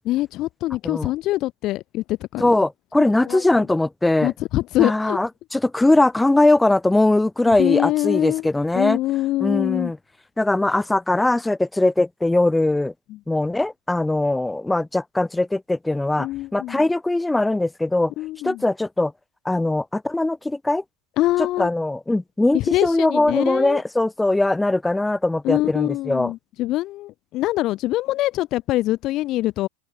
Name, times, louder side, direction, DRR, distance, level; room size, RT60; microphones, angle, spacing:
voice 1, 0.0-2.5 3.2-3.4 4.2-5.2 7.5-8.5 8.7-9.9 13.1-13.2 16.2-16.8 18.2-18.6 21.2-21.7 22.5-23.8 25.4-29.7, left 16 dB, 35° left, 0.8 m, -24 dB
voice 2, 2.4-4.3 4.8-9.0 9.4-10.0 10.4-12.9 13.3-18.1 18.4-19.1 19.5-20.8 21.6-26.3, left 2 dB, 5° left, 2.0 m, -20 dB
figure-of-eight pair, 90°, 0 cm